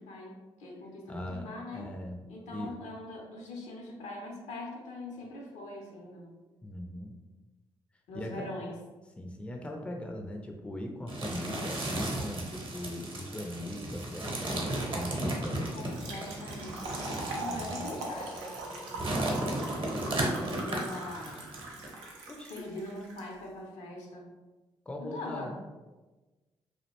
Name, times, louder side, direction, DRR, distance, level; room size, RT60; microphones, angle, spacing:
voice 1, 0.0-1.9 2.3-6.3 8.1-8.7 15.0-15.2 15.7-19.7 20.3-21.4 22.5-24.3 25.0-25.6, left 2 dB, 70° left, 0 dB, 0.6 m, -42 dB
voice 2, 1.1-2.8 6.6-7.2 8.1-8.5 9.2-16.0 17.4-17.9 22.3-22.5 24.9-25.6, left 1 dB, 10° left, 2 dB, 0.4 m, -40 dB
sound 1, 11.1-21.9, right 1 dB, 40° right, 0.8 m, -35 dB
Trickle dribble / Fill (with liquid), 15.7-23.2, right 2 dB, 85° right, 0.4 m, -41 dB
2.4 x 2.1 x 2.9 m, 1.2 s
hypercardioid pair, 45°, 12 cm